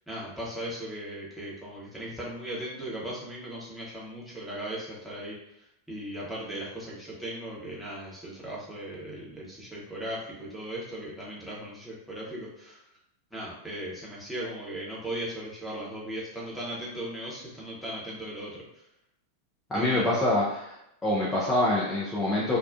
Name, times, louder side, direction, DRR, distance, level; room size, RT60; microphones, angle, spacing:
voice 1, 0.1-12.8 13.3-18.6 19.7-20.1, right 1 dB, ahead, -7 dB, 0.9 m, -38 dB
voice 2, 19.7-20.8 21.0-22.6, left 1 dB, 15° left, -7 dB, 0.5 m, -25 dB
2.4 x 2.2 x 2.3 m, 0.81 s
figure-of-eight pair, 90°, 0 cm